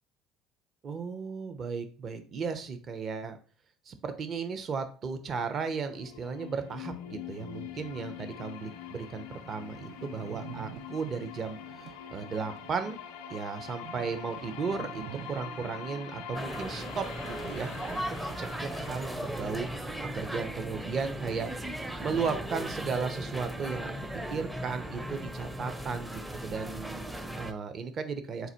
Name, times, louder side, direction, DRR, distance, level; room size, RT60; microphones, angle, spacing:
voice 1, 0.8-3.4 3.9-13.0 13.3-15.0 15.3-21.5 22.0-23.9 24.3-28.5, right 5 dB, 40° right, 9 dB, 0.8 m, -35 dB
sound 1, 5.6-21.6, left 8 dB, 90° left, 0.5 m, -45 dB
sound 2, 8.5-8.6 8.9-9.0 9.2-19.4 19.6-24.1 24.4-24.5 25.1-25.6, right 12 dB, 65° right, 0.4 m, -49 dB
sound 3, 16.3-27.5, right 1 dB, 5° right, 0.5 m, -37 dB
4.0 x 2.5 x 4.3 m, 0.39 s
supercardioid pair, 100°, 0 cm